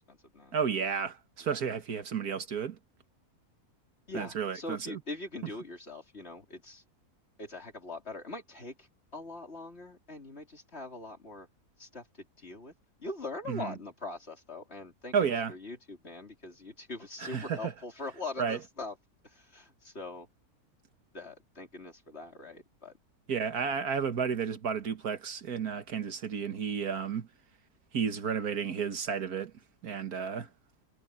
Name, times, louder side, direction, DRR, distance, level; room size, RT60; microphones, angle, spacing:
voice 1, 0.0-0.8 1.4-1.6 4.1-6.8 7.4-11.5 11.8-12.7 13.0-19.0 19.2-20.3 21.1-23.0 23.6-23.7, left 2 dB, 45° left, 4.0 m, -42 dB
voice 2, 0.5-2.8 4.1-5.0 13.5-13.7 15.1-15.5 17.2-17.7 18.4-18.6 23.3-27.3 27.9-29.5 29.8-30.5, right 6 dB, 75° right, 2.0 m, -32 dB
omnidirectional pair, 1.6 m